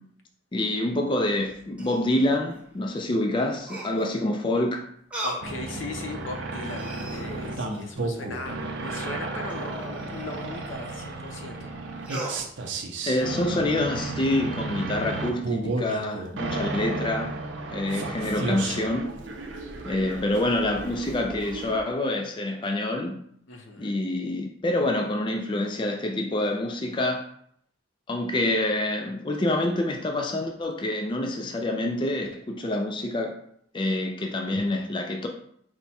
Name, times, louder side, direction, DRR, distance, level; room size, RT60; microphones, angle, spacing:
voice 1, 0.5-4.9 13.1-17.4 17.7-19.1 19.8-23.2 23.8-27.3 28.1-33.4 33.7-35.3, left 1 dB, 25° left, 0.3 m, -27 dB
sound 1, 1.3-2.6 3.6-4.2 5.1-5.5 6.1-6.2 6.6-8.0 9.5-11.0 12.0-12.4, right 1 dB, 5° right, 0.7 m, -38 dB
voice 2, 5.2-11.7 23.5-24.0, left 2 dB, 80° left, 0.6 m, -38 dB
sound 2, 5.4-21.8, right 2 dB, 70° right, 0.6 m, -33 dB
4.5 x 2.1 x 4.1 m
head